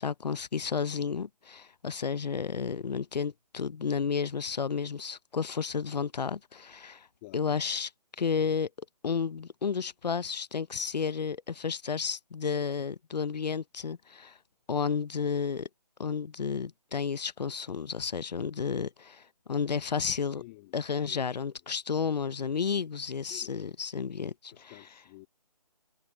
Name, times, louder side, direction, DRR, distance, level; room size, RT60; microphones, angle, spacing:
voice 1, 0.0-7.1 7.3-7.9 8.2-8.7 9.0-14.3 14.7-15.7 16.0-19.2 19.5-20.4 20.7-24.7, left 6 dB, 80° left, 0.6 m, -32 dB
voice 2, 7.2-7.6 20.3-20.8 21.1-21.4 23.3-23.7 24.5-25.3, left 21 dB, 15° left, 1.9 m, -51 dB
hypercardioid pair, 165°, 21 cm